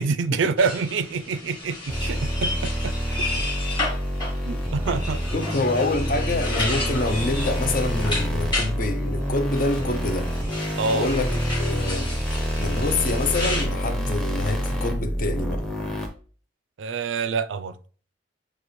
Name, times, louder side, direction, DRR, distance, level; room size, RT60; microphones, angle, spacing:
voice 1, 0.0-3.2 4.5-5.2 10.8-11.1 16.8-17.8, right 4 dB, 80° right, 0.4 m, -26 dB
sound 1, 0.6-8.7 9.5-13.6, left 2 dB, 25° left, 1.7 m, -32 dB
sound 2, 1.9-16.1, equal, 5° left, 0.7 m, -27 dB
voice 2, 5.3-10.3 10.9-11.3 11.6-12.2 12.6-15.7, left 2 dB, 45° left, 0.5 m, -26 dB
6.6 x 2.4 x 3.1 m
head